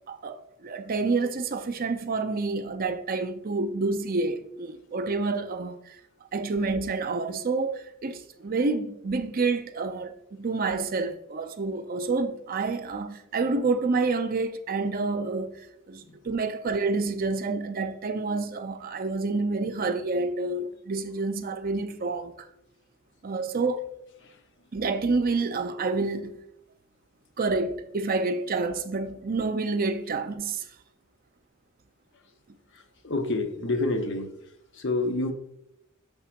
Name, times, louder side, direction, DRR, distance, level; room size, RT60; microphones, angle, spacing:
voice 1, 0.1-6.0 6.3-15.6 15.9-22.5 23.2-23.8 24.7-26.4 27.4-30.6, right 3 dB, 45° right, 0.6 m, -28 dB
voice 2, 32.7-34.4 34.7-35.3, left 2 dB, 60° left, 0.8 m, -29 dB
6.0 x 3.6 x 5.8 m
head